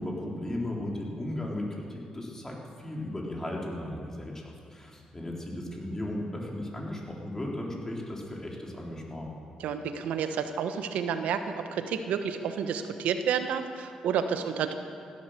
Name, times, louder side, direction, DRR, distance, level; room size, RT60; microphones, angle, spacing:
voice 1, 0.0-9.3, left 1 dB, 20° left, -2 dB, 4.1 m, -36 dB
voice 2, 9.6-14.7, right 7 dB, 80° right, 8 dB, 1.1 m, -30 dB
16.0 x 12.0 x 6.8 m, 2.4 s
supercardioid pair, 65°, 2 cm